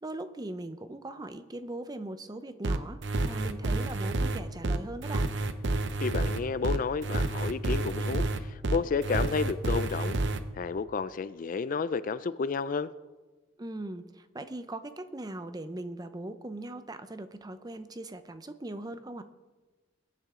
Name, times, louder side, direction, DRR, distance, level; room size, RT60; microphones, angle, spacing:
voice 1, 0.0-5.3 13.6-19.2, right 1 dB, 20° right, 11 dB, 0.6 m, -40 dB
sound 1, 2.6-10.4, right 2 dB, 60° right, 0.8 m, -29 dB
voice 2, 6.0-10.2 10.6-12.9, left 5 dB, 40° left, 15 dB, 0.4 m, -31 dB
21.5 x 10.0 x 3.7 m, 1.2 s
head